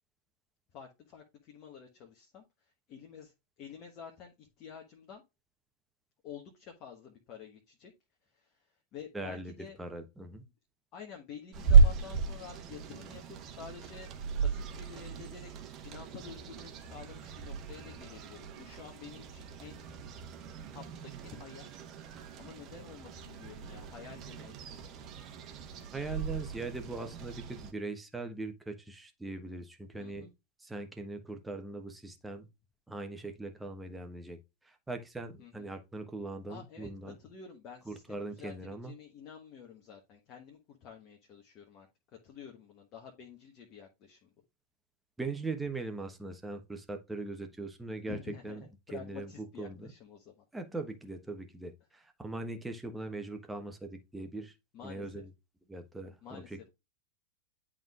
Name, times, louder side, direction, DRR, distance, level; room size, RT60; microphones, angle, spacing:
voice 1, 0.7-5.2 6.2-7.9 8.2-9.8 10.9-14.1 14.4-15.5 15.8-19.8 20.7-21.7 22.4-24.9 29.9-30.3 35.4-35.7 36.5-36.9 37.2-41.9 42.2-44.3 48.1-50.4 54.7-55.2 56.2-56.7, left 7 dB, 35° left, 1.3 m, -49 dB
voice 2, 9.1-9.5 9.8-10.4 25.9-30.3 30.6-32.5 32.9-34.4 34.6-37.2 37.9-38.9 45.2-48.2 48.4-48.6 48.9-49.9 50.5-54.5 54.8-55.3 55.7-56.6, right 3 dB, 5° right, 1.1 m, -40 dB
sound 1, 11.5-27.7, right 5 dB, 35° right, 1.2 m, -32 dB
11.0 x 3.7 x 2.4 m
figure-of-eight pair, 90°, 0 cm